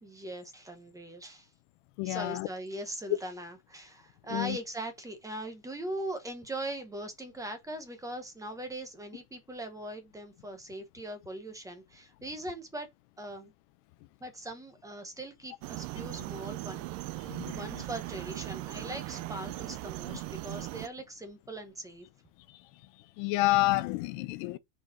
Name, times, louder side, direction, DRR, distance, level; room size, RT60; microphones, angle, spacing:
voice 1, 0.0-1.5 2.0-12.9 13.2-13.5 14.2-16.8 17.2-22.1, right 1 dB, 10° right, 0.9 m, -40 dB
voice 2, 2.0-2.5 4.3-4.6 17.3-17.6 23.2-24.6, left 20 dB, 60° left, 0.7 m, -29 dB
sound 1, 15.6-20.9, right 18 dB, 45° right, 0.5 m, -39 dB
5.3 x 4.3 x 4.1 m
cardioid pair, 165°, 41 cm